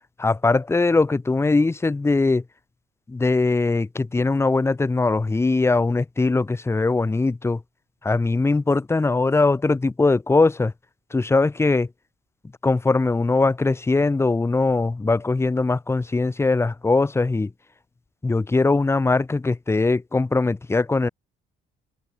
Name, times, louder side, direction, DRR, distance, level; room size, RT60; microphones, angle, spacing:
voice 1, 0.2-2.4 3.1-7.6 8.0-10.7 11.1-11.9 12.6-17.5 18.2-21.1, left 3 dB, 15° left, 1.7 m, -21 dB
open air
cardioid pair, 110°, 17 cm